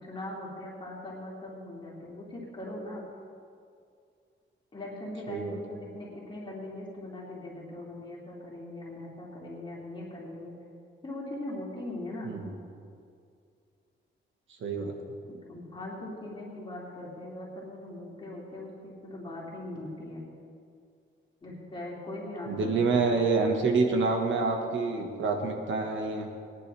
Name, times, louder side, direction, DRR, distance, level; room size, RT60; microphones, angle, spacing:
voice 1, 0.0-3.0 4.7-10.5 11.0-12.3 15.5-20.3 21.4-23.0, left 1 dB, 25° left, -6 dB, 2.8 m, -40 dB
voice 2, 5.3-5.6 12.2-12.5 14.6-14.9 22.5-26.3, right 4 dB, 75° right, 3 dB, 1.6 m, -27 dB
18.5 x 10.5 x 3.5 m, 2.4 s
wide cardioid pair, 150°, 20 cm